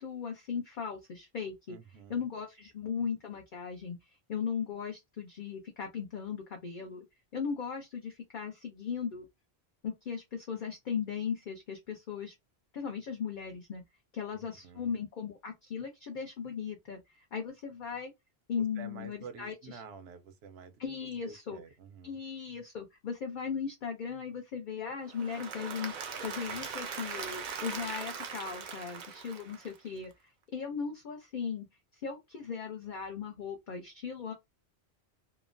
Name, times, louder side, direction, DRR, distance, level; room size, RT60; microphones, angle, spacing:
voice 1, 0.0-1.8 2.1-4.0 4.3-7.0 7.3-9.3 9.8-12.3 12.7-13.8 14.1-18.1 18.5-19.8 20.8-21.6 22.0-25.9 26.2-30.1 30.5-31.6 31.9-34.3, left 6 dB, 55° left, 0.7 m, -37 dB
voice 2, 1.7-2.3 14.3-14.9 18.5-20.8 21.2-22.2, right 5 dB, 75° right, 0.8 m, -49 dB
Applause / Crowd, 25.1-30.0, right 6 dB, 55° right, 0.6 m, -40 dB
3.0 x 2.1 x 2.5 m
omnidirectional pair, 1.1 m